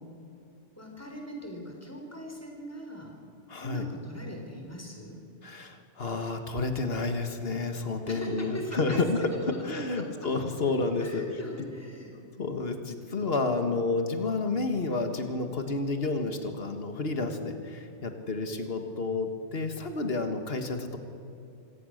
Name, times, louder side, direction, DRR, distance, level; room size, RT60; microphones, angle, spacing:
voice 1, 0.8-3.2 3.6-5.3 8.1-10.6 11.0-12.2, equal, 15° left, 1 dB, 3.8 m, -41 dB
voice 2, 3.5-3.9 5.4-11.2 12.4-21.0, left 3 dB, 55° left, 6 dB, 2.0 m, -30 dB
26.0 x 17.5 x 6.6 m, 2.8 s
omnidirectional pair, 1.2 m